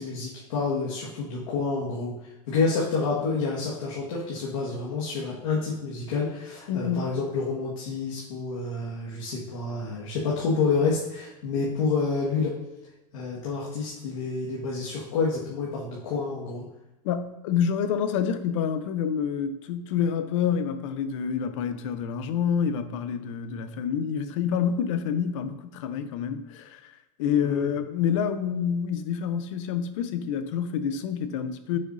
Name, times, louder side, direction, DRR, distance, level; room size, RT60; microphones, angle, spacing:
voice 1, 0.0-2.1 2.5-12.5 13.1-16.6 27.4-27.7, left 4 dB, 90° left, -6 dB, 1.7 m, -28 dB
voice 2, 6.7-7.1 17.0-31.8, left 7 dB, 70° left, 11 dB, 0.7 m, -28 dB
7.9 x 6.6 x 2.7 m, 0.99 s
supercardioid pair, 170°, 17 cm